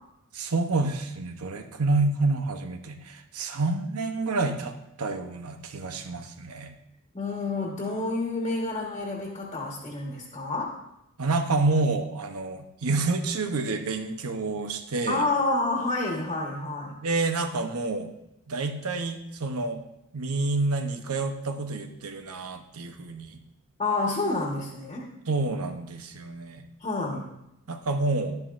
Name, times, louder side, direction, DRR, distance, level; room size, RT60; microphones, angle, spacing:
voice 1, 0.3-6.7 11.2-15.2 17.0-18.1 18.5-19.8 20.1-23.4 25.3-26.6 27.7-28.4, right 3 dB, 90° right, 7 dB, 0.9 m, -28 dB
voice 2, 7.1-10.7 15.1-16.9 23.8-25.1 26.8-27.3, left 2 dB, 25° left, -1 dB, 1.4 m, -29 dB
11.0 x 11.0 x 2.6 m, 0.86 s
head